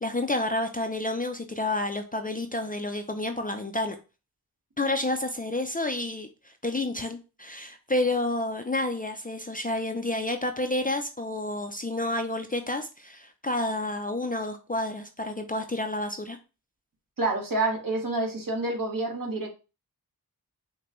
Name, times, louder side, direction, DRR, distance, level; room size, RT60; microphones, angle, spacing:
voice 1, 0.0-4.0 4.8-16.4, left 2 dB, 20° left, 0.4 m, -30 dB
voice 2, 17.2-19.5, right 2 dB, 55° right, 1.4 m, -28 dB
5.9 x 2.2 x 3.0 m
wide cardioid pair, 60°, 39 cm